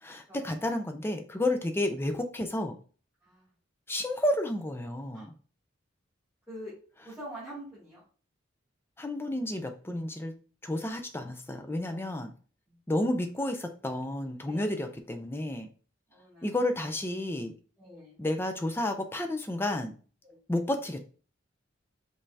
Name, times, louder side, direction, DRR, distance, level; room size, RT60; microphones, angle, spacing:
voice 1, 0.0-2.8 3.9-5.3 9.0-10.3 10.6-12.3 12.9-15.7 16.4-17.5 18.2-19.9 20.5-21.0, left 1 dB, 10° left, 6 dB, 0.4 m, -31 dB
voice 2, 7.0-8.0 11.8-12.2 12.7-12.8 14.5-14.9 16.1-16.5 17.8-18.2 20.2-20.4, equal, 5° right, -9 dB, 2.2 m, -45 dB
5.4 x 3.2 x 2.7 m, 0.39 s
head